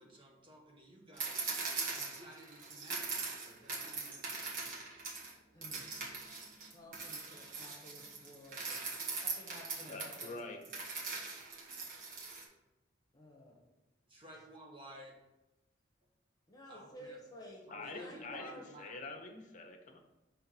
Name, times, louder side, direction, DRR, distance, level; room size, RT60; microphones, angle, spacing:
voice 1, 0.0-1.5 1.9-4.7 14.1-15.1 16.7-17.2 17.6-18.9, right 1 dB, 25° right, -1 dB, 1.2 m, -54 dB
sound 1, 1.2-5.3 5.6-12.4, right 4 dB, 45° right, 1.3 m, -41 dB
voice 2, 5.5-5.9 6.7-8.8 9.2-10.6 13.1-13.6 16.5-18.7, left 1 dB, 20° left, -2 dB, 1.3 m, -53 dB
voice 3, 9.9-10.7 17.7-18.5 18.8-20.0, left 3 dB, 40° left, 3 dB, 0.9 m, -46 dB
5.7 x 3.8 x 6.0 m, 1.0 s
head